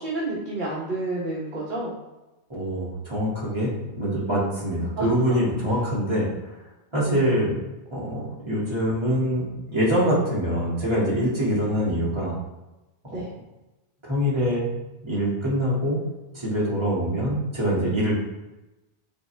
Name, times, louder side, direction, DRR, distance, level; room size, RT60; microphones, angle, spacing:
voice 1, 0.0-2.0 5.0-5.1 7.0-7.3 13.1-13.3, right 2 dB, 45° right, -5 dB, 1.3 m, -30 dB
voice 2, 2.5-6.5 6.9-7.6 7.9-12.4 13.0-13.1 14.0-14.7 15.0-16.0 16.3-18.2, equal, 25° right, -7 dB, 2.3 m, -24 dB
8.2 x 3.7 x 3.4 m, 1.0 s
omnidirectional pair, 1.2 m